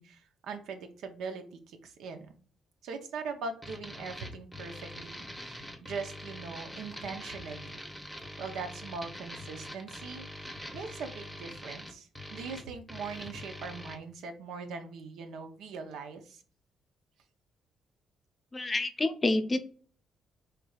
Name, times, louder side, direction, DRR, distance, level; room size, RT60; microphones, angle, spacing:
voice 1, 0.0-2.3 2.8-7.8 8.4-10.3 10.7-16.4, right 4 dB, 80° right, 7 dB, 0.6 m, -41 dB
sound 1, 3.6-14.0, left 1 dB, ahead, 0.8 m, -44 dB
voice 2, 18.5-19.6, left 2 dB, 30° left, 8 dB, 0.5 m, -28 dB
4.6 x 3.2 x 2.3 m, 0.42 s
cardioid pair, 90°, 0 cm